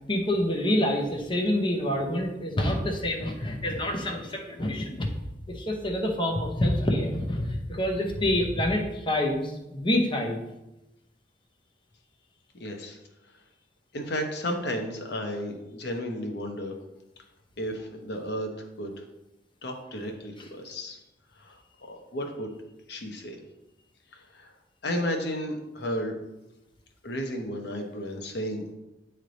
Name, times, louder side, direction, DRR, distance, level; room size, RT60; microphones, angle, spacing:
voice 1, 0.1-5.1 5.5-10.4, left 1 dB, 30° left, 1 dB, 0.7 m, -27 dB
voice 2, 12.6-13.0 13.9-16.7 17.6-18.5 18.8-18.9 19.6-21.0 21.4-21.5 21.8-22.5 22.9-23.4 24.1-24.5 24.8-26.1 27.0-28.6, equal, 65° left, 4 dB, 0.9 m, -33 dB
8.9 x 3.3 x 3.9 m, 0.95 s
head